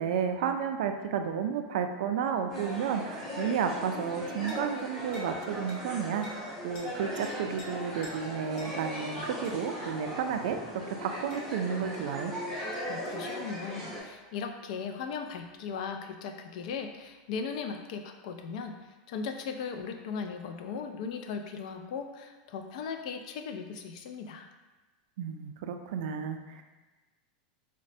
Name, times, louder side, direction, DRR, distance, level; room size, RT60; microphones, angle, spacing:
voice 1, 0.0-10.6 10.9-12.3 25.2-26.6, right 7 dB, 75° right, 6 dB, 0.3 m, -32 dB
sound 1, 2.5-14.0, equal, 5° left, 0.9 m, -38 dB
sound 2, 4.5-4.7 5.1-5.3 5.7-5.8 6.2-6.4 6.7-6.9 7.2-7.7 8.0-8.2 8.6-8.7 9.4-9.6 11.3-11.5, left 1 dB, 35° left, 0.7 m, -48 dB
voice 2, 12.8-24.5, left 6 dB, 65° left, 5 dB, 0.3 m, -38 dB
4.0 x 2.1 x 2.6 m, 1.2 s
supercardioid pair, 155°, 4 cm